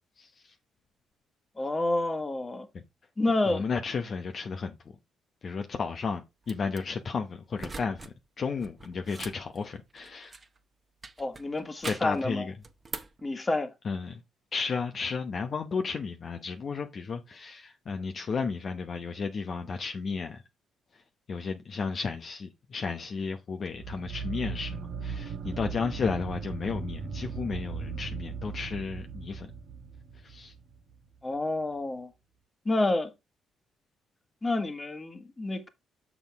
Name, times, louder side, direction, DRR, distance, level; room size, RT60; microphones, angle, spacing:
voice 1, 0.2-0.5 3.5-4.8 5.4-10.3 11.8-12.5 13.8-14.2 14.5-20.4 21.3-29.5 30.2-30.5, left 5 dB, 50° left, 0.9 m, -33 dB
voice 2, 1.6-2.7 3.2-3.7 11.2-12.5 13.2-13.7 31.2-32.1 32.7-33.1 34.4-35.7, left 2 dB, 25° left, 1.6 m, -29 dB
sound 1, 6.4-6.8 7.6-8.1 8.4-10.6 11.0-12.2 12.6-13.2, right 3 dB, 35° right, 1.3 m, -42 dB
sound 2, 23.7-31.0, right 5 dB, 60° right, 1.0 m, -38 dB
7.0 x 6.1 x 3.5 m
hypercardioid pair, 50°, 0 cm